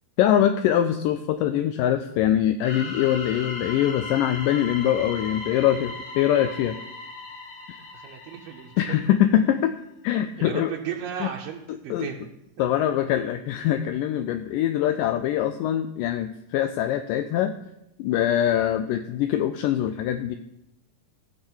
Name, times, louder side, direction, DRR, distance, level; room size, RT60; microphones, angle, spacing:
voice 1, 0.2-6.8 8.8-9.7 10.0-10.7 11.2-11.3 11.9-12.1 12.6-17.5 18.0-20.4, left 11 dB, 80° left, 9 dB, 2.0 m, -23 dB
sound 1, 2.6-9.3, left 3 dB, 60° left, 1.4 m, -37 dB
voice 2, 7.9-9.0 10.4-12.1 12.6-12.7, right 9 dB, 80° right, 1 dB, 2.4 m, -35 dB
16.0 x 6.3 x 4.4 m, 0.86 s
omnidirectional pair, 4.1 m